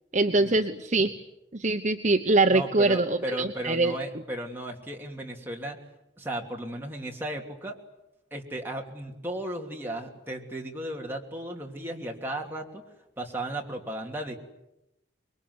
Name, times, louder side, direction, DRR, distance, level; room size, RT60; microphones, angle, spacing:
voice 1, 0.1-1.1 1.5-3.9, right 2 dB, 40° right, 5 dB, 1.0 m, -23 dB
voice 2, 2.5-5.8 6.2-7.8 8.3-12.8 13.2-14.4, right 1 dB, 10° right, 0 dB, 3.0 m, -35 dB
26.0 x 22.5 x 9.6 m, 0.90 s
head